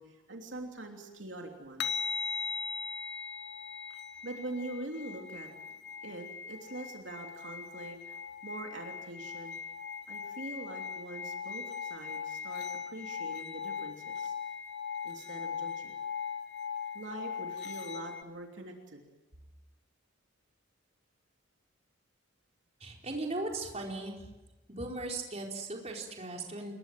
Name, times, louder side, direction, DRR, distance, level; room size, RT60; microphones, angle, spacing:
voice 1, 0.0-2.0 4.2-9.6 10.1-14.3 15.0-15.9 16.9-19.1, right 2 dB, 70° right, 2 dB, 3.2 m, -44 dB
sound 1, 1.8-18.2, left 6 dB, 60° left, 1.1 m, -39 dB
voice 2, 22.8-24.2 24.7-26.7, right 2 dB, 35° right, 0 dB, 4.6 m, -37 dB
28.5 x 22.5 x 7.7 m, 1.0 s
head